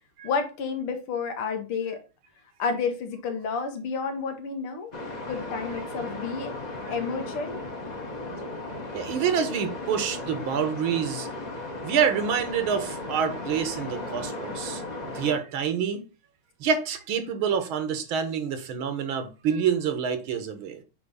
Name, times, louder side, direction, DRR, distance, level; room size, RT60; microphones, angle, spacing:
voice 1, 0.2-2.0 2.6-4.9 5.3-6.5 6.9-7.6, left 5 dB, 85° left, 2.1 m, -30 dB
sound 1, 4.9-15.4, left 2 dB, 30° left, 0.9 m, -36 dB
voice 2, 8.9-11.3 11.8-16.0 16.6-20.8, right 7 dB, 75° right, 1.8 m, -27 dB
8.3 x 3.1 x 5.4 m
omnidirectional pair, 2.3 m